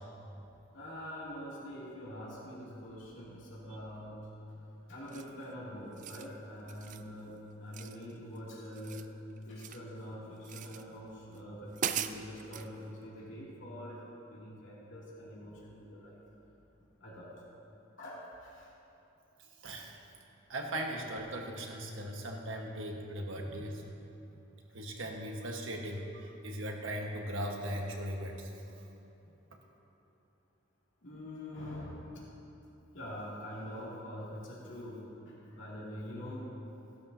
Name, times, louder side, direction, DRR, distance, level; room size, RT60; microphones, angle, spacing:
voice 1, 0.7-4.2 4.9-9.1 9.4-14.0 14.3-16.2 17.0-17.3 18.0-18.7 23.3-23.5 31.0-32.2 32.9-36.5, equal, 65° left, -7 dB, 2.6 m, -44 dB
sound 1, 5.1-5.4 5.9-6.3 6.7-7.1 7.7-8.4 8.6-9.9 10.4-10.8 11.3-11.4 11.7-12.7, right 9 dB, 40° right, 0.4 m, -39 dB
voice 2, 19.6-20.0 20.5-23.8 24.7-28.5, right 1 dB, 75° right, 1 dB, 1.4 m, -38 dB
16.0 x 12.0 x 2.8 m, 2.9 s
head